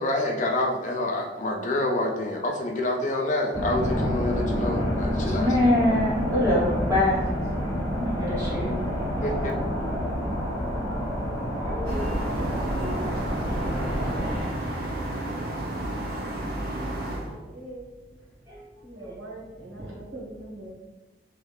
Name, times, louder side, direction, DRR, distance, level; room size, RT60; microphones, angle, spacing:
voice 1, 0.0-5.6 9.2-9.3, left 1 dB, 40° left, 2 dB, 0.3 m, -27 dB
sound 1, 3.5-14.4, equal, 20° left, 1.1 m, -28 dB
voice 2, 5.3-7.2 8.0-9.2 11.2-12.0 12.4-12.5 13.0-13.2 15.6-15.8 16.2-16.4 16.8-16.9 17.3-17.4 18.5-18.6, left 1 dB, 15° right, -8 dB, 1.0 m, -26 dB
sound 2, 11.9-17.4, right 1 dB, 55° right, 0.5 m, -31 dB
voice 3, 12.3-14.7 17.0-18.3 18.8-20.7, right 1 dB, 80° right, -4 dB, 1.2 m, -42 dB
3.1 x 2.3 x 3.2 m, 1.1 s
head